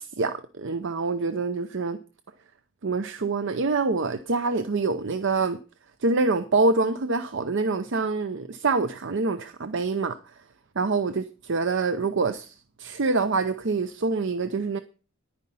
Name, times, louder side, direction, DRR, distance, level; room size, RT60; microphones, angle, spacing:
voice 1, 0.0-2.0 2.8-5.6 6.0-10.2 10.8-14.8, right 3 dB, 60° right, 0.7 m, -26 dB
10.5 x 9.6 x 5.4 m
head